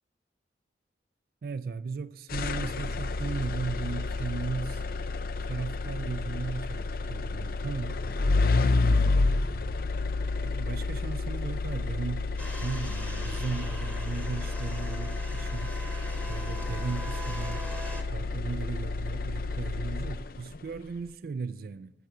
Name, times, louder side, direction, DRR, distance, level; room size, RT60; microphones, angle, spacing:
voice 1, 1.4-4.9 5.4-8.0 10.3-12.3 12.6-15.8 16.3-17.7 18.1-21.9, right 4 dB, 55° right, 0.3 m, -36 dB
sound 1, 2.3-20.6, left 3 dB, 55° left, 0.5 m, -30 dB
sound 2, 12.4-18.0, right 1 dB, 10° left, 1.5 m, -42 dB
15.0 x 5.9 x 9.0 m
head